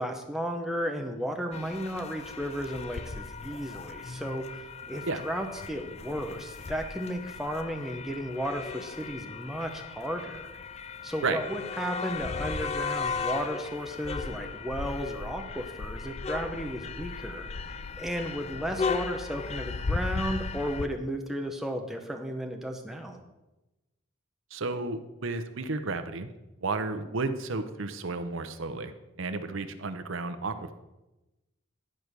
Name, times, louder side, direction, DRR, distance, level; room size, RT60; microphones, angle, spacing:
voice 1, 0.0-10.6 11.0-17.5 18.0-23.2, equal, ahead, 3 dB, 0.8 m, -34 dB
sound 1, 1.5-20.9, left 4 dB, 30° left, 0.4 m, -36 dB
voice 2, 24.5-26.3 26.6-30.7, right 3 dB, 70° right, 9 dB, 0.7 m, -32 dB
11.0 x 4.6 x 6.7 m, 1.0 s
head